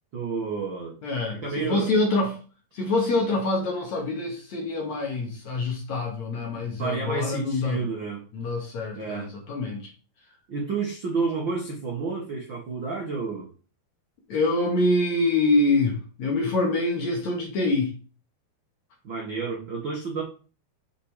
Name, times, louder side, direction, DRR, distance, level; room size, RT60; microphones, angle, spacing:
voice 1, 0.1-1.0 1.4-1.9 6.8-8.2 8.9-9.3 10.5-13.5 19.0-20.2, right 4 dB, 65° right, -1 dB, 1.2 m, -30 dB
voice 2, 1.0-2.4 2.7-7.9 8.3-9.9 14.3-17.9, left 2 dB, 50° left, 0 dB, 2.8 m, -25 dB
7.5 x 5.9 x 5.0 m, 0.36 s
omnidirectional pair, 4.9 m